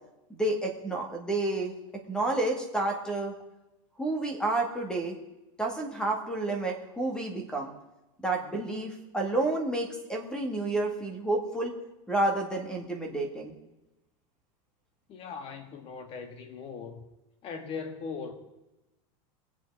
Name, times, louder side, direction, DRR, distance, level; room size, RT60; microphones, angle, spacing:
voice 1, 0.3-1.7 2.1-3.3 4.0-5.2 5.6-7.7 8.2-11.7 12.1-13.5, right 2 dB, 5° left, 2.0 m, -30 dB
voice 2, 15.1-17.1 17.4-18.3, left 5 dB, 35° left, 1.8 m, -39 dB
22.0 x 8.3 x 4.8 m
supercardioid pair, 155°, 17 cm